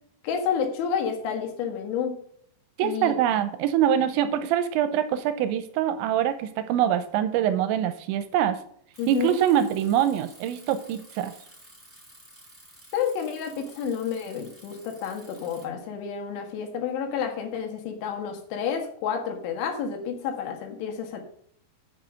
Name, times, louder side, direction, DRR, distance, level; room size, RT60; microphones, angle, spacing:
voice 1, 0.2-2.2 2.8-3.2 9.0-9.4 12.9-21.2, left 7 dB, 85° left, 4 dB, 3.9 m, -30 dB
voice 2, 2.8-8.6 9.1-11.3, right 10 dB, 90° right, 10 dB, 3.0 m, -24 dB
Bicycle, 8.9-15.6, right 1 dB, 5° right, 3.7 m, -52 dB
8.4 x 6.2 x 6.4 m, 0.64 s
omnidirectional pair, 5.3 m